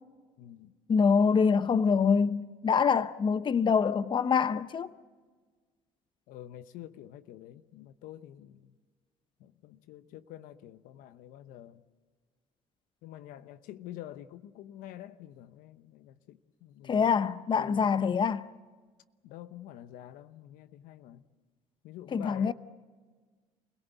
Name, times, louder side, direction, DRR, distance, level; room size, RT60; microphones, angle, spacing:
voice 1, 0.4-0.7 2.8-3.0 6.3-8.7 9.4-11.8 13.0-17.9 19.2-21.2 21.8-22.5, left 12 dB, 75° left, 1.0 m, -47 dB
voice 2, 0.9-4.9 16.8-18.5 22.1-22.5, left 6 dB, 35° left, 0.8 m, -25 dB
29.0 x 17.5 x 8.2 m
supercardioid pair, 80°, 14 cm